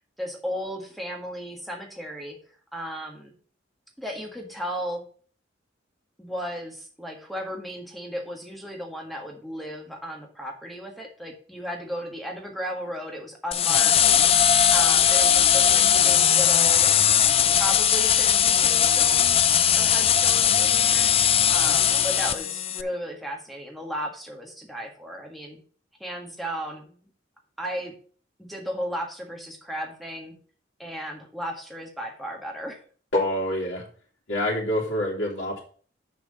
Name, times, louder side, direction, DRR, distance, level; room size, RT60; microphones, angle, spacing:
voice 1, 0.2-2.4 2.7-3.3 4.0-5.0 6.2-14.5 14.7-16.9 17.5-21.1 21.5-25.6 26.0-27.0 27.6-27.9 28.4-30.3 30.8-32.8, equal, ahead, 1 dB, 1.7 m, -35 dB
sound 1, 13.5-22.8, left 9 dB, 30° left, 0.4 m, -19 dB
voice 2, 33.1-33.8 34.3-35.6, left 1 dB, 80° left, -4 dB, 2.5 m, -26 dB
6.9 x 4.8 x 6.6 m, 0.43 s
head